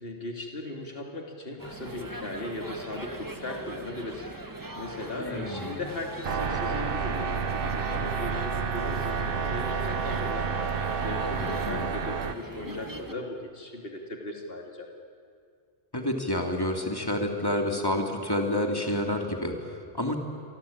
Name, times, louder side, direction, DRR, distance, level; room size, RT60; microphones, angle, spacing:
voice 1, 0.0-10.5 11.0-14.9, left 2 dB, 55° left, 2 dB, 3.0 m, -38 dB
sound 1, 1.6-13.1, right 2 dB, 15° right, 1.5 m, -41 dB
voice 2, 5.1-5.8 11.4-11.9 15.9-20.2, left 1 dB, 20° left, 3 dB, 2.9 m, -29 dB
sound 2, 6.2-12.3, right 6 dB, 55° right, 1.2 m, -30 dB
28.0 x 24.0 x 8.8 m, 2.2 s
omnidirectional pair, 1.2 m